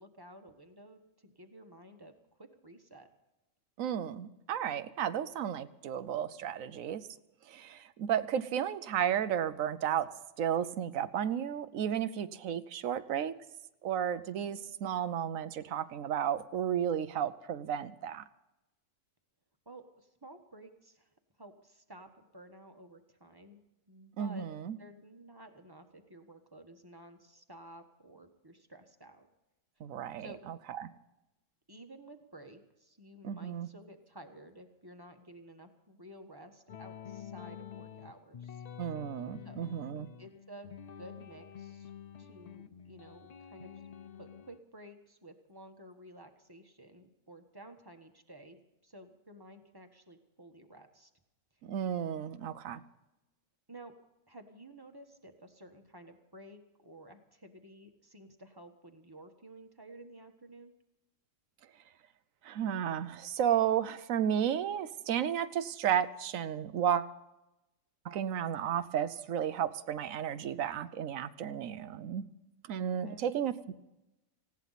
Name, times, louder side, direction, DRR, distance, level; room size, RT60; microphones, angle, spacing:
voice 1, 0.0-2.1 2.4-3.1 19.6-21.1 21.4-23.6 23.9-24.5 24.8-29.3 30.2-30.4 31.7-38.6 39.4-39.7 40.2-41.9 42.2-43.7 44.2-51.1 53.7-53.9 54.3-60.7 72.9-73.3, right 1 dB, 20° right, 5 dB, 1.3 m, -53 dB
voice 2, 3.8-7.1 7.5-13.4 13.8-18.2 24.2-24.8 29.8-30.9 33.2-33.7 38.8-40.1 51.6-52.8 62.4-67.1 68.0-72.2 72.7-73.7, right 9 dB, 90° right, 13 dB, 1.1 m, -33 dB
sound 1, 36.7-44.6, left 8 dB, 55° left, 0.4 m, -48 dB
19.0 x 16.5 x 4.1 m, 0.96 s
omnidirectional pair, 1.3 m